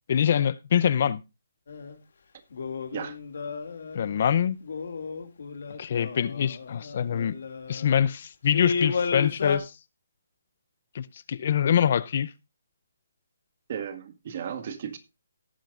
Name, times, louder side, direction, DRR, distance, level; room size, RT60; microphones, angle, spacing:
voice 1, 0.1-1.2 3.9-4.6 5.8-7.4 7.7-9.7 10.9-12.3, left 9 dB, 50° left, 0.6 m, -24 dB
sound 1, 1.7-2.0 2.5-4.2 4.6-7.9 8.5-9.6, left 5 dB, 65° left, 2.4 m, -33 dB
voice 2, 13.7-15.0, right 8 dB, 45° right, 1.7 m, -35 dB
17.5 x 8.9 x 2.5 m
hypercardioid pair, 155°, 0 cm